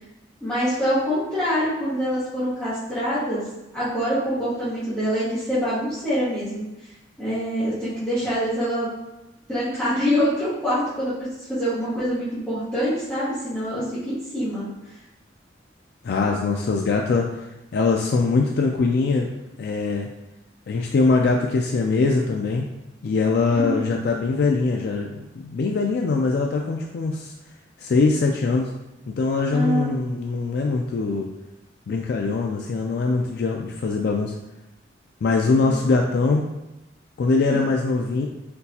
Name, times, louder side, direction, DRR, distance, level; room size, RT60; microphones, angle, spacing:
voice 1, 0.4-3.4 3.7-6.7 7.2-8.9 9.5-11.1 11.5-14.7 23.5-23.9 29.5-30.0 35.7-35.8 37.5-37.6, equal, 5° left, -15 dB, 1.4 m, -25 dB
voice 2, 16.0-17.5 17.7-19.3 19.6-20.1 20.7-22.6 23.0-27.3 27.8-28.7 29.2-31.3 31.9-34.4 35.2-36.4 37.2-38.3, left 3 dB, 55° left, 1 dB, 0.3 m, -22 dB
4.3 x 4.0 x 2.7 m, 0.96 s
head